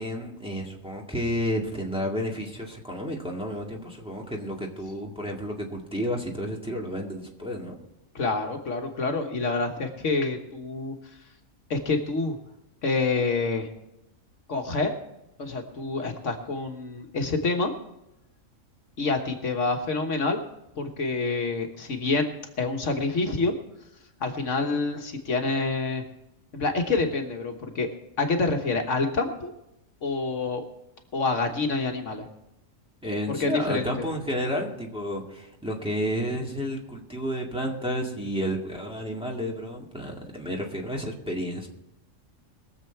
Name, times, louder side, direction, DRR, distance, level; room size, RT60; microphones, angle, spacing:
voice 1, 0.0-7.8 33.0-41.7, equal, 5° right, -2 dB, 2.0 m, -31 dB
voice 2, 8.1-10.9 11.7-12.4 12.8-13.7 14.5-14.9 15.4-17.7 19.0-20.4 20.8-22.3 22.6-23.5 24.2-26.0 26.5-27.9 28.2-29.5 30.0-30.6 31.1-32.3 33.3-33.9, left 3 dB, 70° left, 4 dB, 1.6 m, -27 dB
21.5 x 7.5 x 4.5 m, 0.87 s
omnidirectional pair, 1.4 m